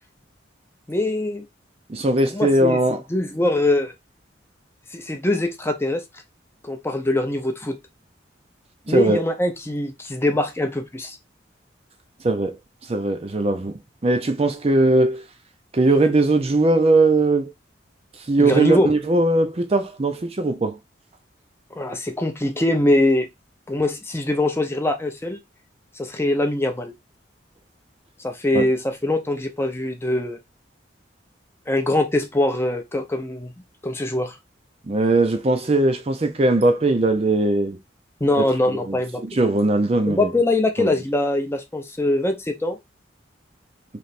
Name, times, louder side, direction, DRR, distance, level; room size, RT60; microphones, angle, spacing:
voice 1, 0.9-1.4 2.3-3.9 4.9-6.0 6.6-7.8 8.9-11.2 18.4-18.9 21.7-23.3 23.7-25.4 26.0-26.9 28.2-30.4 31.7-33.5 33.8-34.4 38.2-39.2 40.1-42.8, left 1 dB, 15° left, 0.6 m, -22 dB
voice 2, 1.9-3.0 8.9-9.2 12.2-12.5 12.9-13.7 14.0-15.2 15.7-17.5 18.3-20.7 28.5-28.6 34.9-37.8 38.9-39.0 39.4-40.3 40.8-40.9, right 2 dB, 30° right, 0.5 m, -19 dB
3.3 x 2.9 x 4.1 m
head